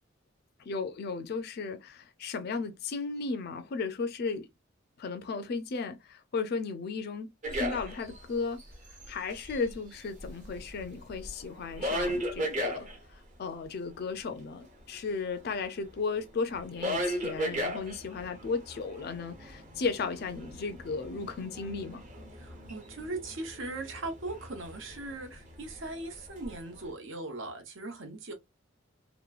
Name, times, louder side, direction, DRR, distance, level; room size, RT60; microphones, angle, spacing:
voice 1, 0.7-4.5 5.0-8.6 9.1-12.9 13.4-22.0, left 4 dB, 55° left, 0.4 m, -35 dB
sound 1, 7.4-8.2 8.6-9.7 10.2-13.0 15.0-15.1 15.3-26.9, equal, 40° right, 0.8 m, -37 dB
voice 2, 22.3-28.3, right 2 dB, 80° right, 0.9 m, -39 dB
2.9 x 2.1 x 2.3 m
head